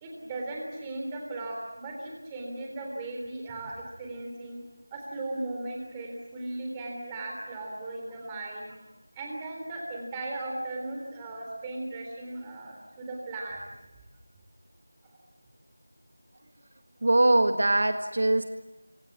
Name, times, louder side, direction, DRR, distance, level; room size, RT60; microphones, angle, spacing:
voice 1, 0.0-4.6 4.9-8.8 9.2-13.7, right 2 dB, 10° right, 0 dB, 3.6 m, -37 dB
voice 2, 17.0-18.4, right 1 dB, 55° right, 7 dB, 1.7 m, -22 dB
27.5 x 25.5 x 7.4 m, 1.0 s
figure-of-eight pair, 175°, 0 cm